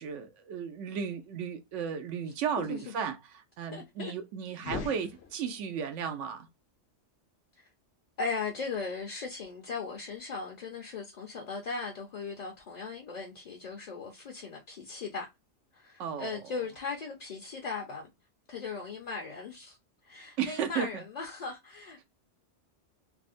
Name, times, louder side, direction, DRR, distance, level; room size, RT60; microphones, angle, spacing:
voice 1, 0.0-6.5 16.0-16.4 20.4-21.0, right 7 dB, 90° right, 0.9 m, -34 dB
voice 2, 3.7-4.1 8.2-15.3 15.7-18.1 18.5-19.8 20.0-22.0, left 4 dB, 45° left, 0.6 m, -38 dB
sound 1, 4.5-5.9, left 5 dB, 65° left, 0.9 m, -40 dB
3.4 x 2.1 x 2.4 m
omnidirectional pair, 1.2 m